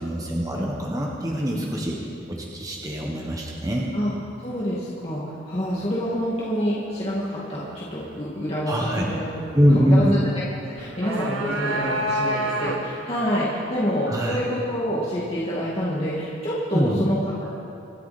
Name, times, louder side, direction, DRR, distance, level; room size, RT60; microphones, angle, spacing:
voice 1, 0.0-2.0 2.3-3.9 8.7-9.1 9.5-10.2 14.1-14.4 16.7-17.0, equal, 20° right, -2 dB, 1.4 m, -23 dB
voice 2, 4.4-9.3 9.7-10.2 10.8-17.2, equal, 30° left, -8 dB, 2.2 m, -27 dB
sound 1, 10.8-13.1, right 1 dB, 80° right, 1.5 m, -27 dB
25.5 x 11.0 x 4.3 m, 2.7 s
head